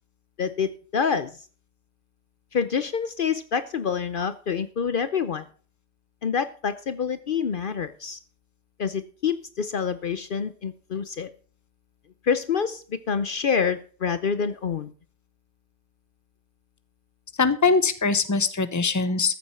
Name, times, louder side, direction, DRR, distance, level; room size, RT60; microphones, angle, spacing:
voice 1, 0.4-1.4 2.5-5.5 6.2-8.2 8.8-11.3 12.2-14.9, left 6 dB, 55° left, 13 dB, 0.9 m, -27 dB
voice 2, 17.4-19.3, left 4 dB, 20° left, 13 dB, 0.9 m, -22 dB
14.0 x 7.8 x 5.6 m, 0.40 s
omnidirectional pair, 1.1 m